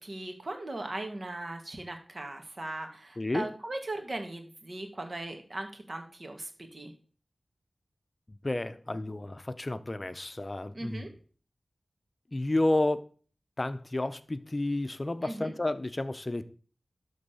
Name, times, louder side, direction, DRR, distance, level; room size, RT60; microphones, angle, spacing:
voice 1, 0.0-6.9 10.7-11.1 15.2-15.5, right 2 dB, 50° right, 2.2 m, -38 dB
voice 2, 3.2-3.5 8.3-11.1 12.3-13.0 13.6-16.6, left 2 dB, 35° left, 0.7 m, -31 dB
12.0 x 4.1 x 6.9 m
wide cardioid pair, 75°, 0 cm